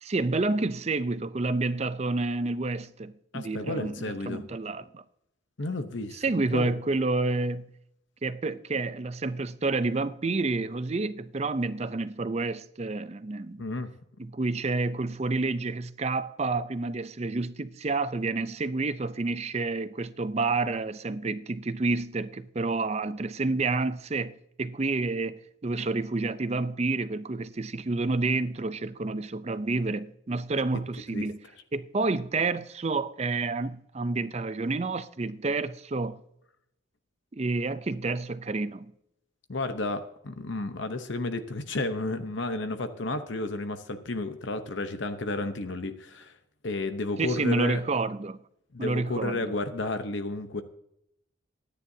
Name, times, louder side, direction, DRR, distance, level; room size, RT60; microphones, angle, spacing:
voice 1, 0.0-5.0 6.1-7.7 8.2-13.6 14.2-31.4 31.7-36.2 37.3-38.9 47.2-48.4 48.8-49.4, right 3 dB, 30° right, 0.5 m, -29 dB
voice 2, 3.3-4.4 5.6-6.2 6.5-6.7 13.6-13.9 31.1-31.3 39.5-46.3 46.6-47.8 48.7-50.6, left 2 dB, 60° left, 0.8 m, -32 dB
23.0 x 10.0 x 2.7 m
head